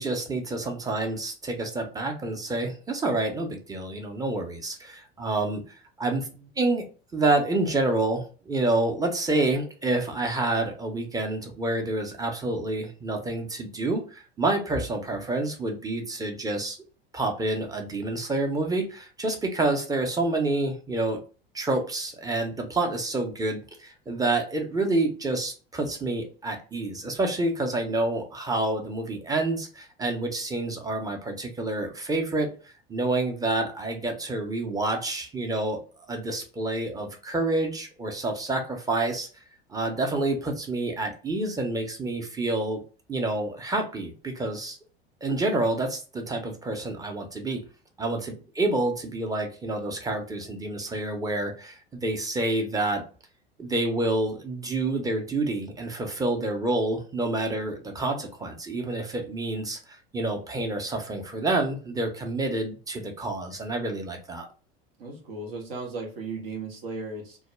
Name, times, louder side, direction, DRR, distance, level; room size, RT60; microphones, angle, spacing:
voice 1, 0.0-5.6 6.0-6.3 6.6-6.9 7.1-16.8 17.1-21.2 21.5-32.5 32.9-35.8 36.1-39.3 39.7-42.8 43.1-44.8 45.2-47.6 48.0-53.0 53.6-59.8 60.1-64.5, right 2 dB, 10° right, 3 dB, 0.6 m, -28 dB
voice 2, 65.0-67.4, right 3 dB, 70° right, 1 dB, 1.0 m, -36 dB
2.3 x 2.0 x 3.1 m, 0.36 s
hypercardioid pair, 80°, 30 cm